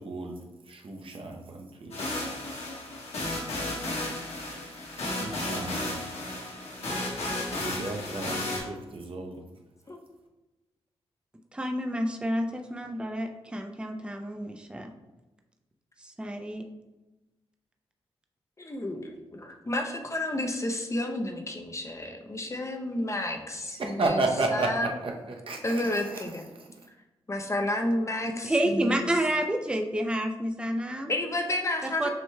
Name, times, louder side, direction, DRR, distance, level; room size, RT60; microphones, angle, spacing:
voice 1, 0.0-2.3 4.9-6.0 7.3-9.4 23.6-26.8, right 2 dB, 55° right, 2 dB, 0.7 m, -33 dB
Space Flight, 1.9-8.6, left 1 dB, 75° left, 1.4 m, -33 dB
voice 2, 11.5-14.9 16.0-16.6 28.3-31.1 31.8-32.1, right 1 dB, 10° right, 3 dB, 0.5 m, -29 dB
voice 3, 18.6-24.2 24.5-24.9 25.6-26.4 27.3-29.0 31.1-32.1, left 1 dB, 30° left, 3 dB, 0.7 m, -31 dB
7.1 x 3.0 x 2.3 m, 1.1 s
cardioid pair, 55°, 11 cm